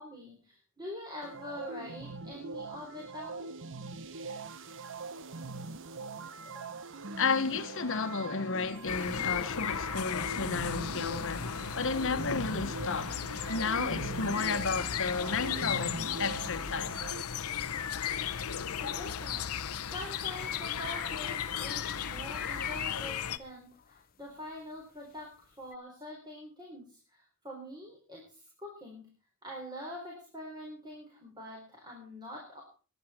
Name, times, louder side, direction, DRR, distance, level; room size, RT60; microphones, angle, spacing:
voice 1, 0.0-3.5 6.4-6.8 18.8-19.5 19.9-29.1 29.4-32.6, left 1 dB, 20° right, 4.2 m, -45 dB
sound 1, 1.2-17.2, right 3 dB, 60° right, 1.0 m, -42 dB
voice 2, 7.2-13.2 13.5-17.2, left 4 dB, 60° left, 1.3 m, -33 dB
sound 2, 8.9-23.4, left 8 dB, 85° left, 0.9 m, -35 dB
sound 3, 11.3-12.2 12.4-18.8 19.0-25.8, left 9 dB, 40° left, 0.8 m, -46 dB
22.0 x 9.4 x 4.4 m
head